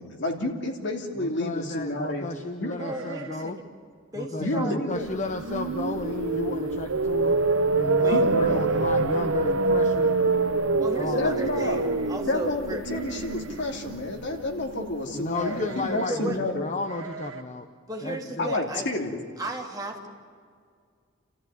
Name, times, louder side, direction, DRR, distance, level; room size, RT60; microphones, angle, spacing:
voice 1, 0.0-2.3 2.6-2.8 4.4-5.1 8.1-8.7 11.2-11.8 12.2-16.7 18.4-19.2, left 2 dB, 60° left, 3 dB, 2.9 m, -29 dB
voice 2, 1.2-3.6 4.2-7.4 7.7-10.1 10.9-11.4 15.1-17.7 18.0-18.6, left 2 dB, 35° left, 7 dB, 1.0 m, -33 dB
sound 1, 2.7-3.7 3.9-4.0 4.5-4.8 5.3-5.4 5.7-6.2 6.6-6.7 7.8-7.9 8.2-8.6 11.3-12.3 12.8-13.8 15.3-16.3 16.8-17.4, right 5 dB, 85° right, 2.0 m, -43 dB
voice 3, 2.8-3.5 4.1-4.8 8.0-8.2 10.8-12.8 16.1-16.4 17.9-18.9 19.4-20.1, right 1 dB, 20° right, 0 dB, 3.0 m, -34 dB
sound 2, 5.1-15.2, right 3 dB, 70° right, 0.9 m, -26 dB
29.5 x 14.5 x 9.4 m, 2.1 s
head